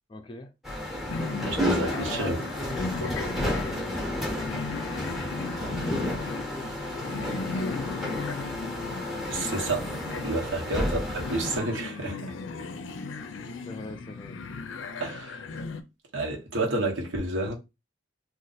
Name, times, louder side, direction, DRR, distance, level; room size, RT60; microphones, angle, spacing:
voice 1, 0.1-0.5 1.8-4.7 5.6-8.0 8.3-8.5 10.4-10.8 13.7-14.4, left 2 dB, 25° left, 0.4 m, -41 dB
sound 1, 0.6-11.6, left 1 dB, ahead, 0.7 m, -32 dB
sound 2, 1.1-15.8, left 3 dB, 80° left, 0.5 m, -36 dB
voice 2, 1.5-2.4 3.0-3.1 9.3-9.9 10.2-12.3 15.0-15.4 16.1-17.5, right 2 dB, 85° right, 1.1 m, -30 dB
2.6 x 2.4 x 4.0 m
head